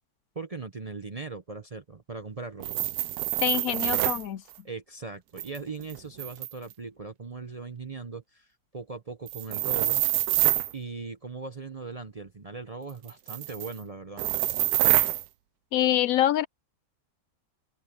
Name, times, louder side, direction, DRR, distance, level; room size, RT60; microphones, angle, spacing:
voice 1, 0.3-2.9 4.6-8.5 8.7-10.0 10.7-14.2, right 4 dB, 35° right, 0.6 m, -39 dB
sound 1, 2.6-4.2 5.4-6.7 9.3-10.7 13.1-13.7 14.2-15.2, right 14 dB, 85° right, 1.1 m, -26 dB
voice 2, 3.4-4.4 15.7-16.5, left 12 dB, 70° left, 1.0 m, -25 dB
open air
omnidirectional pair, 1.6 m